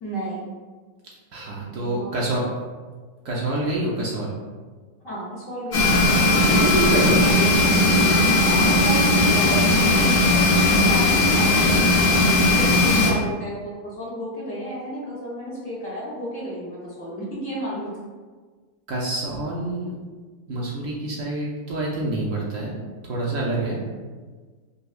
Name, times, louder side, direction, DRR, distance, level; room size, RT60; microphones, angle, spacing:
voice 1, 0.0-0.5 1.6-2.2 5.0-6.0 7.2-7.9 8.5-12.0 12.5-17.9, equal, 60° left, -8 dB, 1.2 m, -32 dB
voice 2, 1.3-2.4 3.2-4.3 6.4-7.2 12.6-12.7 18.9-19.9 20.5-22.8 23.1-23.8, right 1 dB, 65° right, -4 dB, 0.8 m, -26 dB
sound 1, 5.7-13.1, left 2 dB, 75° left, 1.5 m, -18 dB
5.2 x 2.0 x 2.4 m, 1.4 s
omnidirectional pair, 1.7 m